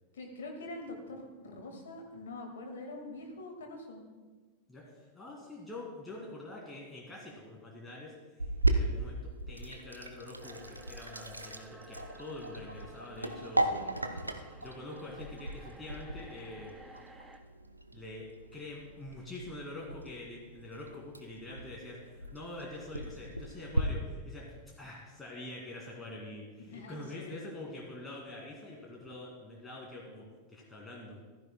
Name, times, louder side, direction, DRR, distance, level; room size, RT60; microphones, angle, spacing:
voice 1, 0.1-4.0 13.3-13.4 13.7-14.2 26.7-27.4, left 2 dB, 65° left, 3 dB, 1.8 m, -45 dB
voice 2, 4.7-13.8 14.6-16.8 17.9-31.2, left 2 dB, 10° left, -4 dB, 2.2 m, -45 dB
Sink (filling or washing), 8.4-23.8, right 1 dB, 85° right, 0.6 m, -37 dB
sound 1, 10.4-17.4, right 2 dB, 10° right, 0.8 m, -54 dB
14.5 x 12.5 x 2.2 m, 1.3 s
figure-of-eight pair, 90°, 0 cm